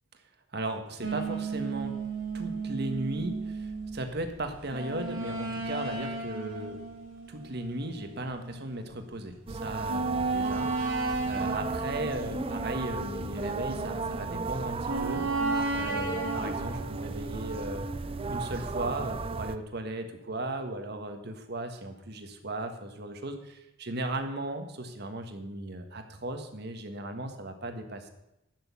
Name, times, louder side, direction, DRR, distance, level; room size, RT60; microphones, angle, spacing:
voice 1, 0.5-2.0 2.3-6.8 7.3-15.4 15.7-17.9 18.3-28.1, right 2 dB, 55° right, 6 dB, 1.5 m, -36 dB
sound 1, 1.0-8.7 9.2-9.3 9.9-14.3 14.9-18.4, right 3 dB, 85° right, 3.4 m, -34 dB
sound 2, 9.5-19.6, right 4 dB, 30° right, 0.5 m, -35 dB
12.0 x 6.4 x 8.3 m, 0.88 s
head